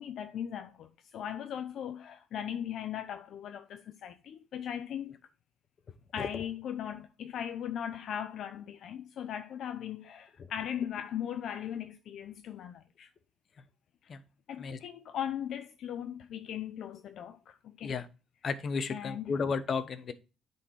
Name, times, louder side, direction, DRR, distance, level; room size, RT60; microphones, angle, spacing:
voice 1, 0.0-5.2 6.1-13.1 14.5-17.9 18.9-19.3, left 9 dB, 70° left, 0.6 m, -38 dB
voice 2, 18.4-20.1, left 5 dB, 50° left, 1.0 m, -33 dB
9.7 x 4.3 x 4.6 m
cardioid pair, 90°, 0 cm